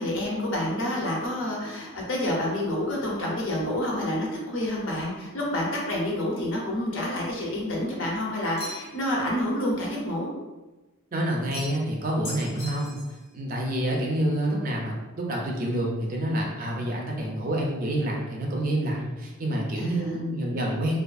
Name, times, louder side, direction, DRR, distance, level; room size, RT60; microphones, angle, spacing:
voice 1, 0.0-10.3 19.8-20.2, left 1 dB, 65° left, -3 dB, 0.7 m, -28 dB
sound 1, 8.6-9.1 11.5-11.9 12.2-13.2, left 1 dB, 30° left, 0.7 m, -39 dB
voice 2, 11.1-13.0 13.3-21.0, right 1 dB, 40° right, -1 dB, 0.4 m, -28 dB
2.5 x 2.4 x 2.3 m, 1.1 s
head